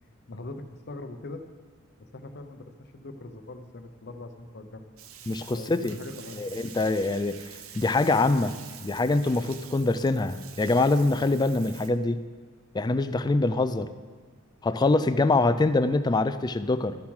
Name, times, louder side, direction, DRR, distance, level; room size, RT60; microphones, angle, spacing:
voice 1, 0.3-1.4 2.1-4.9 5.5-6.4, left 2 dB, 50° left, 8 dB, 0.7 m, -41 dB
Bathtub (filling or washing), 5.0-11.9, right 8 dB, 80° right, 0.8 m, -47 dB
voice 2, 5.3-6.0 6.4-7.4 7.7-8.5 8.8-12.2 12.7-13.9 14.6-17.0, left 2 dB, 20° left, 12 dB, 0.3 m, -24 dB
12.5 x 7.1 x 4.8 m, 1.5 s
head